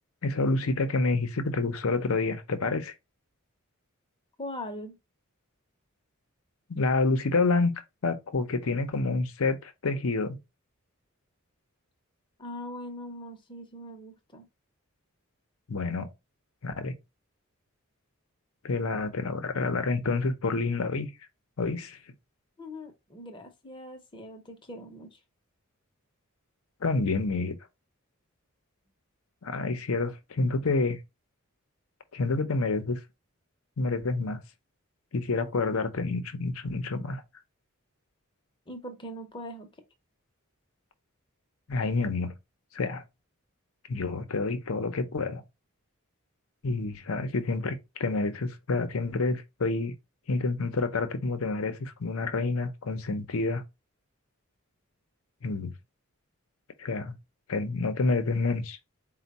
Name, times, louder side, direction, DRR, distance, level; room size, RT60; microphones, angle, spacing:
voice 1, 0.2-2.9 6.7-7.7 8.0-10.4 15.7-16.1 16.6-17.0 18.6-21.1 21.6-22.0 26.8-27.6 29.4-31.0 32.1-33.0 33.8-34.4 35.1-37.2 41.7-42.3 42.7-43.0 43.9-45.4 46.6-49.9 50.3-53.6 55.4-55.7 56.8-57.1 57.5-58.8, left 3 dB, 75° left, 0.7 m, -28 dB
voice 2, 4.4-5.0 12.4-14.5 22.6-25.2 38.7-39.7, left 1 dB, 20° left, 0.7 m, -41 dB
4.4 x 2.2 x 4.0 m
head